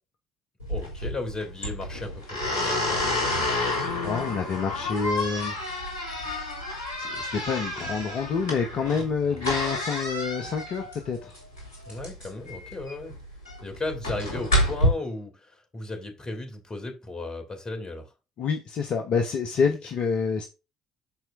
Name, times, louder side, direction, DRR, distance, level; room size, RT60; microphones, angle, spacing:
sound 1, 0.6-14.9, left 1 dB, 75° left, 2.5 m, -29 dB
voice 1, 0.7-3.4 9.3-9.5 11.9-13.2 13.6-18.1 19.6-19.7, left 2 dB, 30° left, 2.7 m, -35 dB
voice 2, 4.0-5.6 7.0-11.4 18.4-20.5, left 5 dB, 55° left, 0.9 m, -27 dB
13.0 x 4.5 x 2.5 m
figure-of-eight pair, 45°, 2 cm